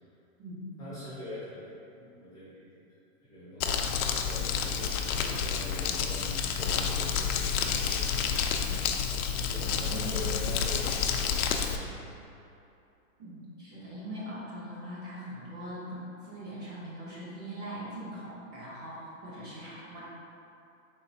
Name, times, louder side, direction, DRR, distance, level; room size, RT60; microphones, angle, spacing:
voice 1, 0.8-2.9 3.2-8.8 9.3-12.5, left 1 dB, 10° left, -12 dB, 0.7 m, -43 dB
Crumpling crinkling, 3.6-11.8, left 7 dB, 85° left, 0.5 m, -29 dB
voice 2, 9.5-10.3 13.2-20.0, right 1 dB, 25° right, -9 dB, 1.1 m, -41 dB
4.3 x 3.8 x 2.7 m, 2.7 s
hypercardioid pair, 150°, 42 cm